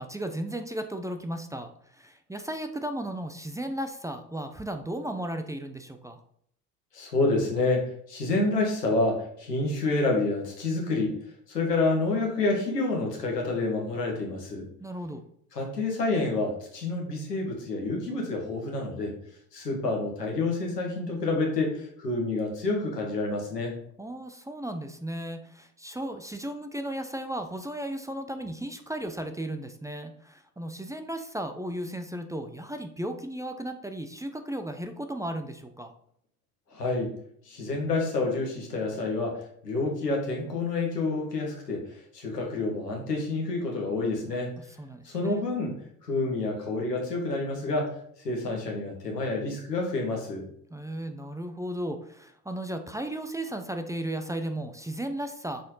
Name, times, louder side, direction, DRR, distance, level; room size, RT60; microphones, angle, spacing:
voice 1, 0.0-1.7 1.9-6.2 14.8-15.2 24.0-35.9 44.8-45.4 50.7-55.6, right 1 dB, 5° right, 7 dB, 0.6 m, -35 dB
voice 2, 6.9-11.1 11.5-14.6 15.5-19.1 19.5-23.7 36.7-37.1 37.4-44.5 45.0-45.7 46.0-48.0 48.2-50.4, left 3 dB, 90° left, 0 dB, 1.6 m, -28 dB
6.5 x 4.2 x 4.0 m, 0.66 s
hypercardioid pair, 60°, 47 cm